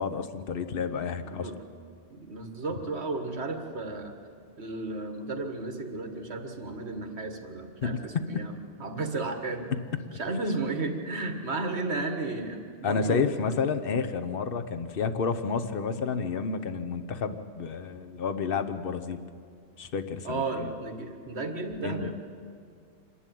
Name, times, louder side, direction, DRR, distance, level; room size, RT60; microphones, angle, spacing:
voice 1, 0.0-1.5 7.8-8.0 12.8-19.2 19.8-20.7 21.8-22.1, left 5 dB, 55° left, 9 dB, 1.1 m, -30 dB
voice 2, 1.2-1.6 2.1-4.2 4.6-8.5 8.8-9.7 10.1-13.3 20.2-22.1, right 3 dB, 70° right, 5 dB, 1.8 m, -33 dB
26.0 x 11.0 x 9.2 m, 2.2 s
omnidirectional pair, 1.2 m